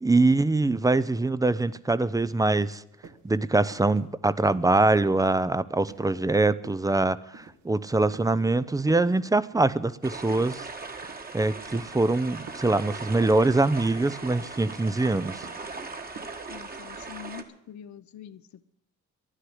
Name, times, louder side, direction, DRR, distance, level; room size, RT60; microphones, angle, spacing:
voice 1, 0.0-2.8 3.2-10.7 11.3-15.4, right 2 dB, 10° right, 17 dB, 0.5 m, -23 dB
sound 1, 2.2-2.5 3.0-3.3 3.7-4.1 4.4-4.8 5.2-5.6 5.9-6.2 6.6-7.0 7.3-7.8 8.1-8.6 8.8-9.9 10.3-10.6 11.0-11.3 11.7-12.1 12.5-12.8 13.2-13.5 14.0-14.4 14.7-14.9 15.4-15.7 16.1-16.5 17.0-17.1, right 5 dB, 70° right, 1.7 m, -47 dB
sound 2, 10.0-17.4, right 3 dB, 30° right, 1.6 m, -39 dB
voice 2, 16.5-18.6, left 9 dB, 65° left, 14 dB, 0.9 m, -44 dB
11.5 x 9.9 x 9.5 m, 0.78 s
cardioid pair, 90°, 30 cm